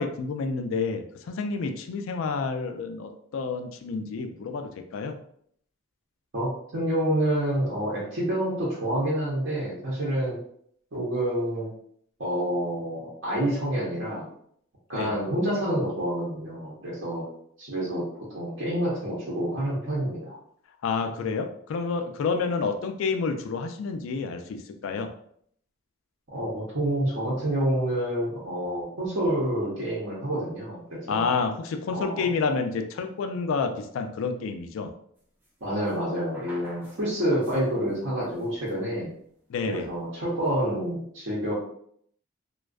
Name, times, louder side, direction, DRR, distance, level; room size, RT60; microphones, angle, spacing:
voice 1, 0.0-5.2 14.9-15.1 20.8-25.1 31.1-34.9 39.5-39.9, left 4 dB, 75° left, 6 dB, 0.3 m, -29 dB
voice 2, 6.3-10.4 10.9-11.7 12.2-14.3 14.9-17.2 17.6-20.4 26.3-31.3 31.9-32.3 35.6-39.1 39.7-41.5, right 1 dB, 65° right, -7 dB, 0.7 m, -28 dB
sound 1, 35.4-35.5 35.8-37.9 38.2-38.8 39.7-40.5, right 1 dB, 10° right, 0.4 m, -45 dB
2.5 x 2.2 x 2.3 m, 0.66 s
head